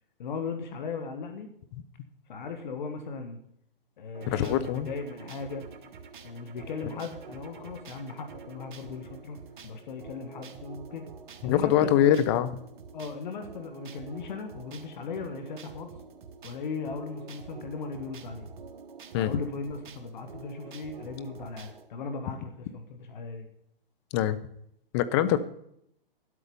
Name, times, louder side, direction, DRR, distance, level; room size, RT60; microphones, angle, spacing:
voice 1, 0.2-1.5 2.3-3.4 4.0-5.7 6.2-9.4 9.6-11.1 11.4-12.2 12.9-15.9 16.4-18.5 19.2-23.5, left 4 dB, 55° left, 6 dB, 1.8 m, -37 dB
sound 1, 4.1-21.9, right 5 dB, 55° right, 1.5 m, -47 dB
voice 2, 4.3-4.9 11.4-12.5 19.1-19.3 24.1-24.4 24.9-25.4, left 11 dB, 30° left, 12 dB, 0.8 m, -23 dB
12.0 x 8.3 x 5.4 m, 0.71 s
hypercardioid pair, 135°, 29 cm